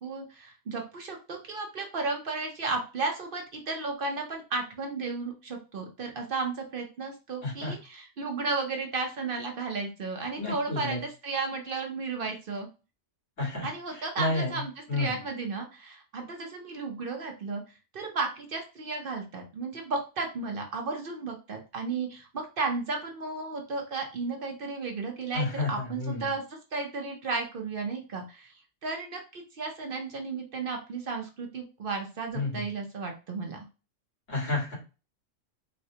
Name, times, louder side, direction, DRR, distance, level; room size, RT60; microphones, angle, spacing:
voice 1, 0.0-12.7 13.6-17.6 17.9-26.4 26.7-28.5 28.8-33.6, right 3 dB, 55° right, 2 dB, 0.7 m, -34 dB
voice 2, 7.4-7.7 10.4-11.0 13.4-14.6 14.9-15.2 25.3-26.3 32.3-32.7 34.3-34.7, left 2 dB, 80° left, -5 dB, 2.3 m, -31 dB
4.1 x 2.2 x 2.7 m, 0.32 s
omnidirectional pair, 1.3 m